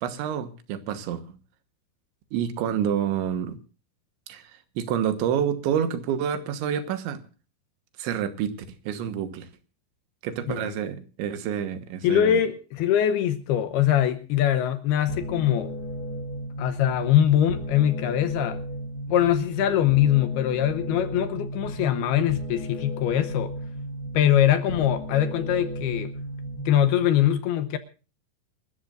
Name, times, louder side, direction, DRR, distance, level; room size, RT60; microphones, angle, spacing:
voice 1, 0.0-1.4 2.3-3.6 4.3-7.2 8.0-8.5 8.9-9.5 10.2-12.4, right 9 dB, 85° right, 10 dB, 3.6 m, -28 dB
voice 2, 12.0-15.7 16.6-18.6 19.1-23.5 24.1-26.1 26.7-27.8, left 11 dB, 75° left, 10 dB, 2.6 m, -22 dB
sound 1, 15.1-27.1, equal, 55° left, 1.4 m, -34 dB
27.0 x 13.0 x 2.5 m, 0.36 s
omnidirectional pair, 5.2 m